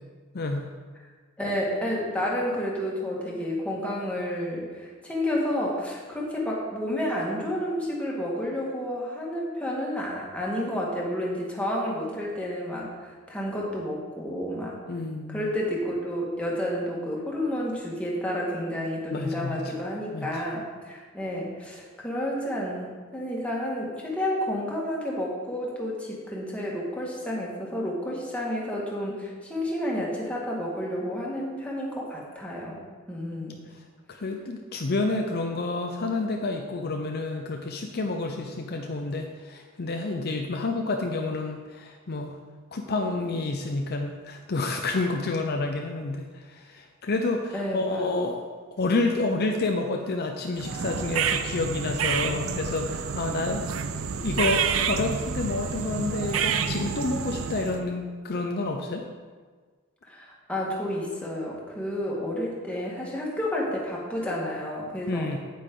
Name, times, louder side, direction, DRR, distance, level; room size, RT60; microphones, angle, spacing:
voice 1, 0.3-0.7 14.9-15.5 19.1-19.6 20.1-20.3 34.1-42.3 42.7-48.5 48.7-53.9 54.1-59.0 65.1-65.4, left 2 dB, 50° left, 3 dB, 0.6 m, -29 dB
voice 2, 1.4-12.9 13.3-14.8 15.3-32.8 33.1-33.6 47.5-48.1 60.1-65.3, left 1 dB, 5° left, -4 dB, 1.8 m, -30 dB
sound 1, 50.6-57.8, right 6 dB, 70° right, 0.5 m, -29 dB
9.0 x 8.5 x 3.8 m, 1.5 s
head